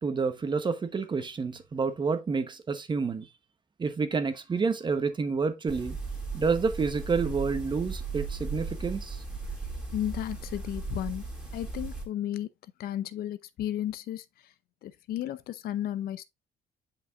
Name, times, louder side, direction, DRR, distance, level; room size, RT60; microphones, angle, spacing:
voice 1, 0.0-3.3 3.8-6.0 6.3-9.2, right 5 dB, 25° right, 1.1 m, -29 dB
sound 1, 5.7-12.0, right 4 dB, 5° right, 2.6 m, -36 dB
voice 2, 9.9-11.2 11.5-12.5 12.8-14.2 14.8-16.2, left 12 dB, 65° left, 0.6 m, -33 dB
8.3 x 5.1 x 2.5 m
cardioid pair, 110°, 17 cm